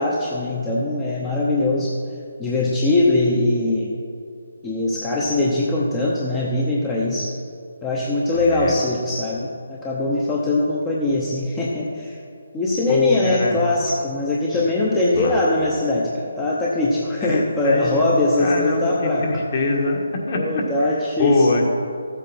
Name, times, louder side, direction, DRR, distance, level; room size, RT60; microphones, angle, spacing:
voice 1, 0.0-2.0 2.4-3.9 4.6-7.4 7.8-12.2 12.5-19.2 20.3-21.6, left 2 dB, 10° left, -5 dB, 0.8 m, -21 dB
voice 2, 8.3-8.8 12.9-13.6 15.1-15.5 17.2-21.6, left 2 dB, 35° left, 1 dB, 1.6 m, -24 dB
13.5 x 8.1 x 4.4 m, 2.3 s
hypercardioid pair, 170°, 0 cm